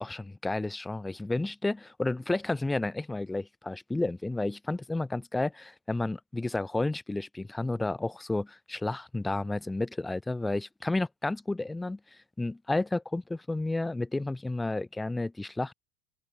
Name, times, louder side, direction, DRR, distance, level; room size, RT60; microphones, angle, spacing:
voice 1, 0.0-12.0 12.4-15.7, left 2 dB, 5° left, 0.9 m, -31 dB
open air
supercardioid pair, 150°, 0 cm